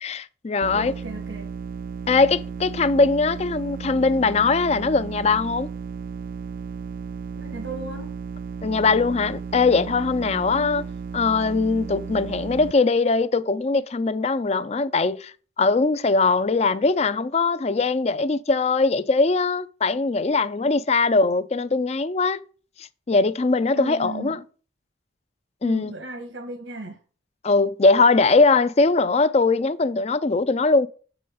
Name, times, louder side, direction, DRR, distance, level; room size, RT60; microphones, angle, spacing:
voice 1, 0.0-0.9 2.1-5.7 8.6-10.8 11.1-22.4 22.8-24.4 25.6-25.9 27.4-30.9, left 3 dB, 35° left, 0.4 m, -21 dB
sound 1, 0.6-12.7, right 6 dB, 45° right, 0.3 m, -34 dB
voice 2, 0.7-1.5 7.3-8.2 10.5-10.8 23.7-24.4 25.6-27.0, right 1 dB, 90° right, 1.5 m, -36 dB
7.6 x 5.0 x 5.5 m
head